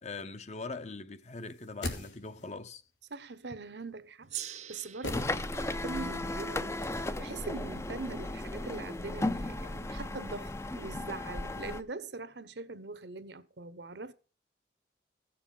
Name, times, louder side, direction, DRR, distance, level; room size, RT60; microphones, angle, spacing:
voice 1, 0.0-2.8, left 3 dB, 35° left, 0.8 m, -42 dB
sound 1, 1.4-2.6 5.0-5.9 6.2-6.3, left 2 dB, 90° left, 2.7 m, -40 dB
voice 2, 3.1-14.1, right 3 dB, 70° right, 1.0 m, -42 dB
Gong, 4.3-9.0, right 11 dB, 35° right, 0.7 m, -47 dB
sound 2, 5.0-11.8, left 2 dB, 15° left, 0.5 m, -35 dB
16.0 x 7.0 x 5.4 m
head